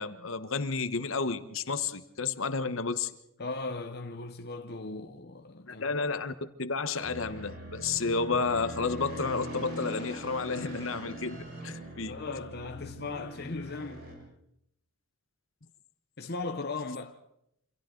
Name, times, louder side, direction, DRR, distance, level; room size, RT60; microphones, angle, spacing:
voice 1, 0.0-3.1 5.7-6.3 6.6-12.2, left 4 dB, 65° left, 1.2 m, -31 dB
voice 2, 3.4-5.8 12.1-14.1 16.2-17.2, left 3 dB, 50° left, 0.9 m, -37 dB
sound 1, 7.0-14.1, right 1 dB, 45° right, 6.7 m, -42 dB
28.0 x 26.5 x 3.9 m
head